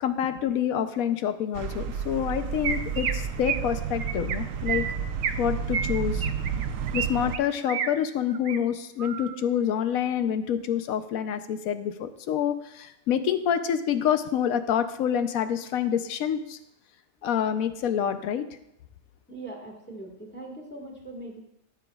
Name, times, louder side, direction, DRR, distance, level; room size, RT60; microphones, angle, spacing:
voice 1, 0.0-4.8 5.4-6.3 6.9-16.6 17.2-18.5, left 9 dB, 75° left, 10 dB, 1.1 m, -27 dB
sound 1, 1.5-7.4, right 6 dB, 70° right, 0.9 m, -31 dB
Chirp tweet, 2.2-2.3 2.6-3.1 3.4-3.7 4.0-4.4 4.7-5.4 5.7-7.1 7.3-7.9 8.3-8.6 9.0-9.4, right 8 dB, 85° right, 0.4 m, -30 dB
voice 2, 19.3-21.4, right 2 dB, 10° left, 0 dB, 1.5 m, -41 dB
14.0 x 7.1 x 2.3 m, 0.81 s
omnidirectional pair, 1.5 m